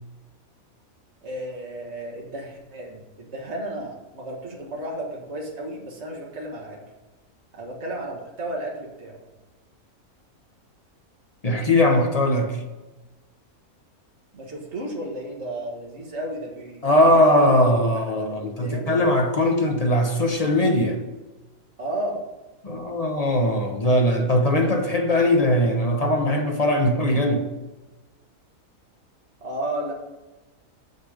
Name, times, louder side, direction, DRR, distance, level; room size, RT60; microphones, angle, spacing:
voice 1, 1.2-6.8 7.5-9.2 14.3-17.2 17.5-17.7 18.1-19.0 21.8-22.2 29.4-29.9, right 1 dB, 50° right, 2.0 m, -33 dB
voice 2, 11.4-12.6 16.8-21.0 22.6-27.5, left 1 dB, 35° left, 0.7 m, -20 dB
6.7 x 6.6 x 5.0 m
omnidirectional pair, 1.5 m